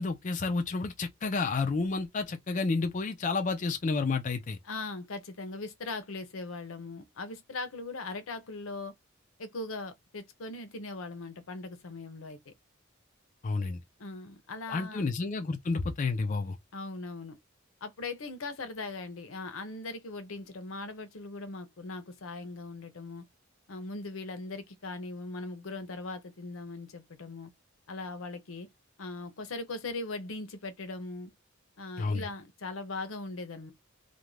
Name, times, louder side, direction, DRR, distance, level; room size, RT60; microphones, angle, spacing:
voice 1, 0.0-4.6 13.4-13.8 14.7-16.6 32.0-32.3, left 3 dB, 40° left, 0.4 m, -30 dB
voice 2, 4.6-8.9 9.4-12.5 14.0-15.1 16.7-17.4 17.8-23.3 23.7-27.5 27.9-28.7 29.0-31.3 31.8-33.7, left 3 dB, 85° left, 0.7 m, -40 dB
2.5 x 2.1 x 3.1 m
head